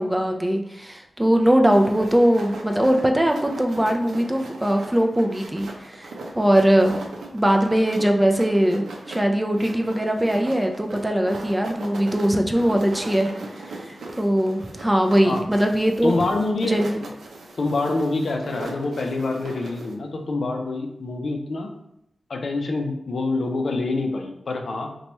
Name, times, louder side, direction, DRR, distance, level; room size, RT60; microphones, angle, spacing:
voice 1, 0.0-6.1 6.3-7.0 7.3-13.3 13.7-16.2 16.6-17.0, equal, 10° right, 3 dB, 0.4 m, -21 dB
sound 1, 1.7-19.9, right 2 dB, 90° right, 0.5 m, -39 dB
voice 2, 16.0-16.8 17.6-21.7 22.3-24.9, left 2 dB, 65° left, 3 dB, 0.4 m, -26 dB
3.0 x 2.2 x 4.0 m, 0.79 s
wide cardioid pair, 85°, 0 cm